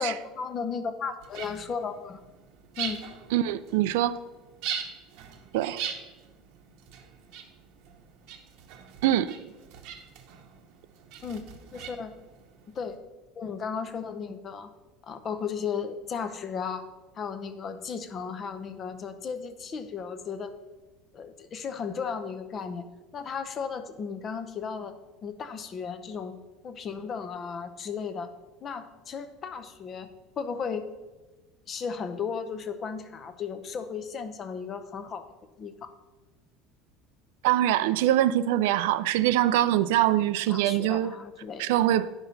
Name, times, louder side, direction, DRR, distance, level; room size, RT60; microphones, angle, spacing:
voice 1, 0.0-2.2 2.8-3.0 11.2-11.5 11.7-12.1 12.8-13.0 13.3-14.7 15.0-16.9 17.2-20.5 21.1-22.8 23.1-25.0 25.2-26.4 26.6-28.3 28.6-30.1 30.4-30.8 31.7-35.3 35.6-35.9 40.5-41.7, left 6 dB, 25° left, 0.6 m, -35 dB
sound 1, 1.2-13.0, right 7 dB, 60° right, 0.9 m, -41 dB
voice 2, 3.3-4.2 5.5-5.8 9.0-9.4 37.4-41.2 41.6-42.1, right 13 dB, 85° right, 0.4 m, -24 dB
10.5 x 5.9 x 4.0 m
cardioid pair, 165°, 0 cm